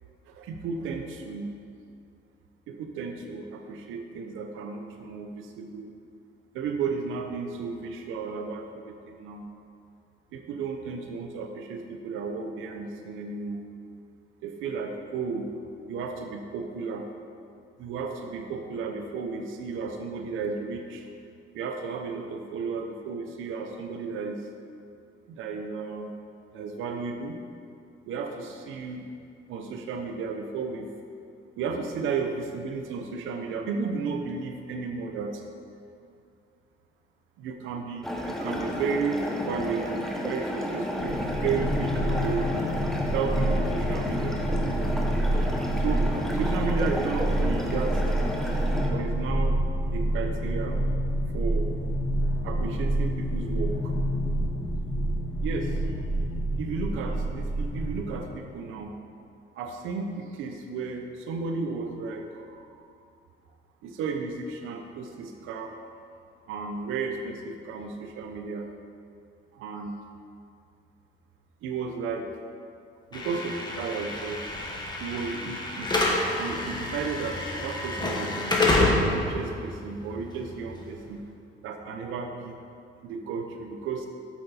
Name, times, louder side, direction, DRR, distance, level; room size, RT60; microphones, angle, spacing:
voice 1, 0.3-1.5 2.7-5.9 6.5-9.5 10.3-13.6 14.4-15.5 15.9-17.0 17.8-21.1 21.5-24.4 25.3-26.1 26.5-27.4 28.1-29.0 29.5-30.9 31.6-35.4 37.4-42.6 43.0-44.4 45.8-46.1 46.3-48.3 48.9-49.6 49.9-50.8 51.3-51.7 52.4-53.7 55.4-55.8 56.6-59.0 59.5-62.9 63.8-65.7 66.5-68.7 69.5-69.9 71.6-72.3 73.1-74.4 75.0-81.2 81.6-82.6 83.0-84.1, right 5 dB, 90° right, 3 dB, 0.7 m, -33 dB
sound 1, 38.0-48.9, equal, ahead, 1.3 m, -32 dB
sound 2, 41.0-58.2, right 1 dB, 75° left, 1.8 m, -28 dB
Slam / Alarm, 73.1-81.2, left 2 dB, 20° left, 1.5 m, -28 dB
8.1 x 7.9 x 4.2 m, 2.4 s
cardioid pair, 90°, 20 cm